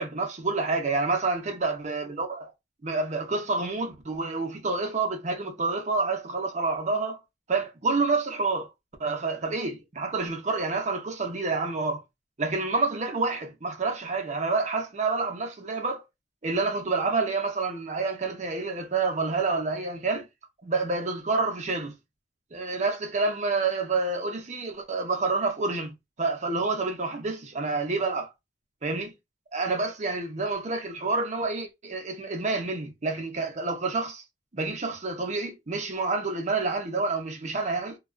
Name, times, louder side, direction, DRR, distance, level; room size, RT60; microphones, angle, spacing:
voice 1, 0.0-2.5 2.8-7.2 7.5-8.7 9.0-12.0 12.4-16.0 16.4-20.3 20.6-21.9 22.5-28.3 28.8-29.1 29.5-34.2 34.5-38.0, right 3 dB, 40° right, 0.7 m, -28 dB
2.3 x 2.3 x 2.3 m
head